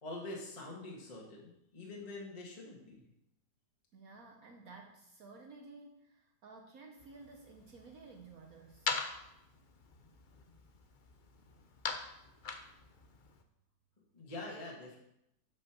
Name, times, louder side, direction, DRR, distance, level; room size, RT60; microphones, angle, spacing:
voice 1, 0.0-3.0 14.1-15.0, left 2 dB, 20° left, -3 dB, 1.6 m, -45 dB
voice 2, 3.9-9.0, right 3 dB, 60° right, 3 dB, 1.2 m, -54 dB
sound 1, 7.0-13.4, left 4 dB, 80° left, 0.4 m, -43 dB
8.3 x 5.3 x 5.9 m, 0.82 s
omnidirectional pair, 2.0 m